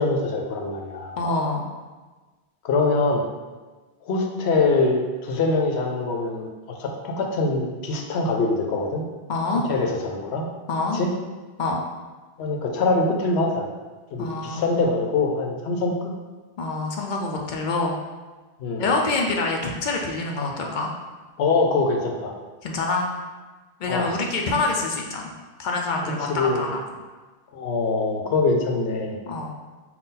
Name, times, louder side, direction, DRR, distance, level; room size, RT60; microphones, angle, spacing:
voice 1, 0.0-1.2 2.6-3.2 4.0-9.0 9.6-10.4 10.9-11.1 12.4-13.7 14.1-16.0 18.6-18.9 21.4-22.3 23.9-24.1 26.0-26.6 27.5-29.2, left 3 dB, 90° left, 2 dB, 0.9 m, -23 dB
voice 2, 1.2-1.6 9.3-9.6 10.7-11.0 11.6-11.8 14.2-14.7 16.6-17.9 18.8-20.9 22.6-23.1 23.8-25.3 25.6-26.8 29.3-29.5, left 3 dB, 60° left, 0 dB, 0.6 m, -26 dB
4.1 x 2.3 x 3.7 m, 1.3 s
omnidirectional pair, 1.1 m